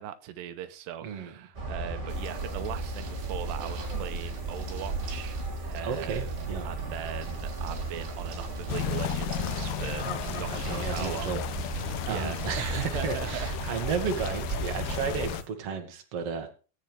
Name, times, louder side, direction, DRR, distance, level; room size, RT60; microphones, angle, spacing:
voice 1, 0.0-10.1 10.4-13.9, right 11 dB, 85° right, 11 dB, 2.9 m, -39 dB
voice 2, 1.0-1.3 5.8-6.7 10.0-11.4 12.0-16.5, right 6 dB, 45° right, 4 dB, 2.3 m, -33 dB
sound 1, 1.5-15.3, right 2 dB, 25° right, 2.0 m, -35 dB
sound 2, 2.1-15.5, right 4 dB, 65° right, 5.0 m, -49 dB
sound 3, 8.7-15.4, left 14 dB, 80° left, 2.8 m, -35 dB
20.5 x 8.4 x 3.4 m, 0.36 s
omnidirectional pair, 4.8 m